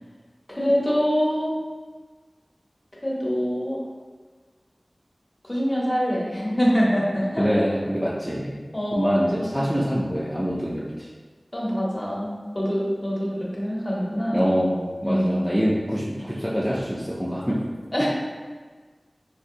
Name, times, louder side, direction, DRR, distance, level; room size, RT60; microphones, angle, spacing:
voice 1, 0.5-1.6 3.0-3.8 5.4-7.5 8.7-9.5 11.5-14.4 15.0-15.4 17.9-18.1, equal, 30° left, -6 dB, 1.0 m, -24 dB
voice 2, 7.4-8.6 8.9-11.1 14.3-17.6, equal, ahead, -7 dB, 0.5 m, -25 dB
3.8 x 2.7 x 2.6 m, 1.4 s
wide cardioid pair, 45°, 0 cm